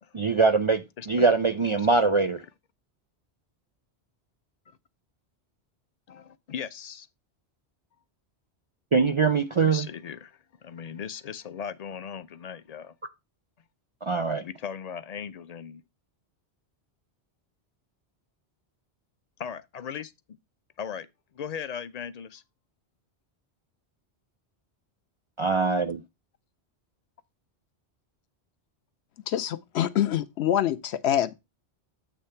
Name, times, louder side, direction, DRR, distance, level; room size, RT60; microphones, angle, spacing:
voice 1, 0.1-2.4 8.9-9.9 14.0-14.4 25.4-26.0, right 4 dB, 45° right, 0.4 m, -23 dB
voice 2, 1.0-1.4 1.8-1.9 4.7-4.8 6.1-7.1 9.5-13.0 14.4-15.8 19.4-20.4 20.8-21.1 21.3-22.4, left 7 dB, 50° left, 0.5 m, -38 dB
voice 3, 29.3-31.3, left 11 dB, 85° left, 0.9 m, -25 dB
8.4 x 3.2 x 5.6 m
omnidirectional pair, 1.1 m